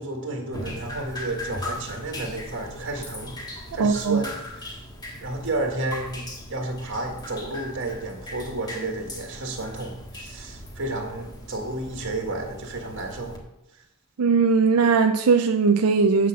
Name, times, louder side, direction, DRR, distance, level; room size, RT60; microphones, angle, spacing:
voice 1, 0.0-4.8 5.2-13.4, right 2 dB, 55° right, 2 dB, 1.7 m, -32 dB
Drip, 0.5-13.4, left 1 dB, 20° left, 1.7 m, -39 dB
voice 2, 3.8-4.2 14.2-16.3, right 4 dB, 80° right, 6 dB, 0.5 m, -19 dB
8.4 x 5.9 x 7.2 m, 0.88 s
head